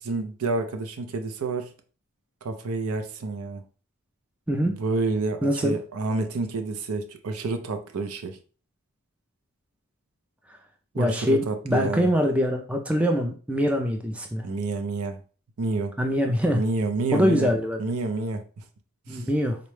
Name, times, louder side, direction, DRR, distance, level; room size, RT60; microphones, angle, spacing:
voice 1, 0.0-1.7 2.4-3.6 4.7-8.4 10.9-12.1 14.4-15.2 15.6-16.0 16.5-17.5 17.8-18.4 19.1-19.3, right 3 dB, 80° right, 0.5 m, -29 dB
voice 2, 5.4-5.8 11.0-14.5 16.0-16.6 17.1-17.8 19.1-19.6, equal, 5° right, 0.3 m, -23 dB
3.8 x 2.1 x 3.1 m
head